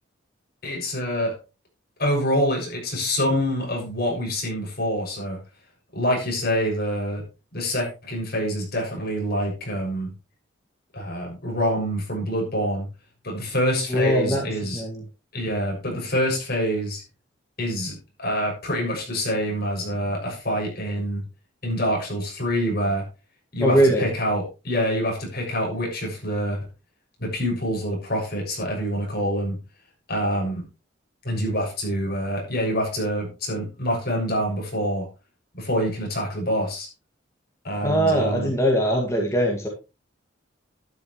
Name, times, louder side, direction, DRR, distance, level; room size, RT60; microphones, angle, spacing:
voice 1, 0.6-1.4 2.0-5.4 5.9-7.2 7.5-10.1 10.9-12.9 13.2-14.8 15.3-17.0 17.6-21.2 21.6-23.0 23.5-26.6 27.2-29.6 30.1-30.6 31.2-35.1 35.5-36.9 37.6-38.5, equal, 55° left, 0 dB, 6.7 m, -26 dB
voice 2, 13.9-15.0 23.6-24.0 37.8-39.7, equal, 15° left, -1 dB, 2.1 m, -21 dB
12.0 x 11.0 x 3.2 m, 0.30 s
head